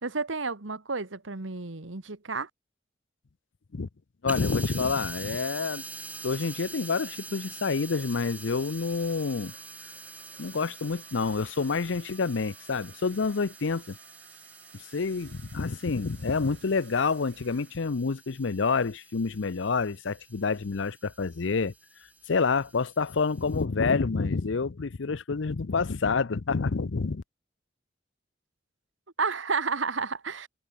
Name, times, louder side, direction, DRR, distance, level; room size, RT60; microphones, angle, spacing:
voice 1, 0.0-2.5 29.2-30.5, right 4 dB, 85° right, 1.5 m, -31 dB
voice 2, 4.2-5.8 6.2-9.5 10.4-14.0 14.9-21.7 22.3-27.2, left 4 dB, 80° left, 0.6 m, -28 dB
sound 1, 4.3-23.6, right 3 dB, 10° right, 0.8 m, -46 dB
sound 2, 5.8-17.8, right 7 dB, 55° right, 5.3 m, -55 dB
head